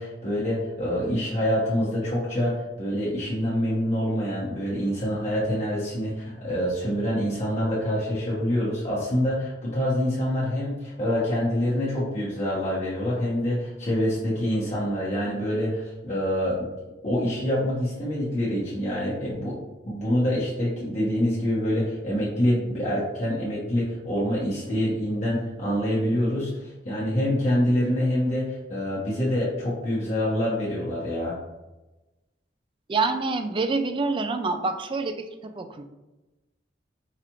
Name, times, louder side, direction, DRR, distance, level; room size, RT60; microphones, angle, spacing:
voice 1, 0.0-16.7 17.0-19.6 19.9-31.4, equal, 40° left, -8 dB, 1.1 m, -26 dB
voice 2, 32.9-35.8, right 3 dB, 30° right, 8 dB, 0.3 m, -27 dB
4.9 x 2.4 x 2.9 m, 1.0 s
head